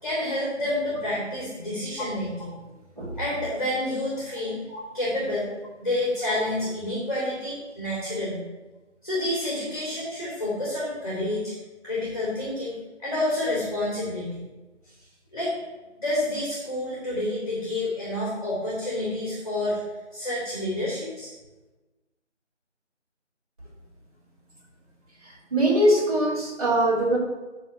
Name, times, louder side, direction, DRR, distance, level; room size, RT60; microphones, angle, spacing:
voice 1, 0.0-2.6 3.2-4.6 4.9-5.5 5.8-8.4 9.0-11.5 11.8-14.4 15.3-15.6 16.0-19.8 20.1-21.3, left 1 dB, 30° left, -7 dB, 2.6 m, -29 dB
voice 2, 25.5-27.2, right 1 dB, 30° right, -6 dB, 2.4 m, -22 dB
9.6 x 4.2 x 7.3 m, 1.2 s
figure-of-eight pair, 170°, 36 cm